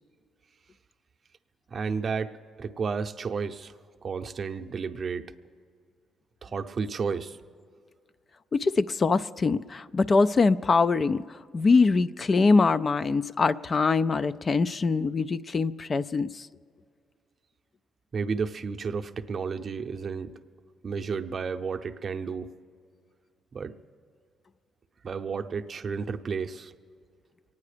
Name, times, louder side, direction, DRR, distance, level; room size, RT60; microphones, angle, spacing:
voice 1, 1.7-2.3 2.6-3.7 4.0-5.3 6.4-7.4 18.1-20.3 20.8-22.5 23.5-23.7 25.0-26.7, right 5 dB, 45° right, 6 dB, 0.6 m, -32 dB
voice 2, 8.5-16.5, left 4 dB, 40° left, 14 dB, 0.3 m, -23 dB
24.0 x 9.5 x 5.0 m, 2.2 s
cardioid pair, 90°, 0 cm